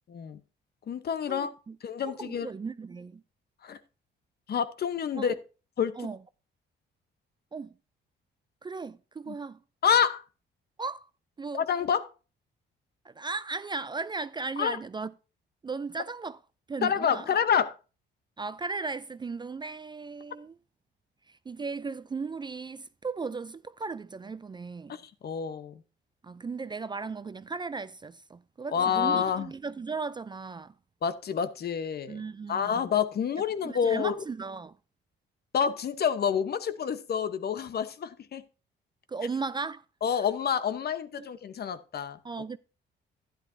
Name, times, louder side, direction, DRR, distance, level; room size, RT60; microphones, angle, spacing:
voice 1, 0.1-0.4 0.9-1.5 1.8-2.5 3.6-3.8 4.5-5.3 5.8-6.0 9.3-9.4 9.8-10.2 11.5-12.1 14.6-14.8 16.8-17.7 24.9-25.7 28.7-29.5 31.0-32.2 32.5-34.2 35.5-38.4 40.0-42.2, left 7 dB, 55° left, 0.9 m, -28 dB
voice 2, 1.3-1.8 2.1-3.2 5.1-5.3 6.0-6.2 7.5-7.7 8.6-9.6 10.8-11.1 11.4-11.7 13.0-15.1 15.6-16.4 16.7-17.3 18.4-20.5 21.3-25.0 26.2-30.7 32.1-32.8 33.6-34.8 39.1-39.8 40.1-40.3 41.2-41.3 42.2-42.6, right 4 dB, 25° right, 0.4 m, -36 dB
11.5 x 10.5 x 2.6 m
cardioid pair, 90°, 20 cm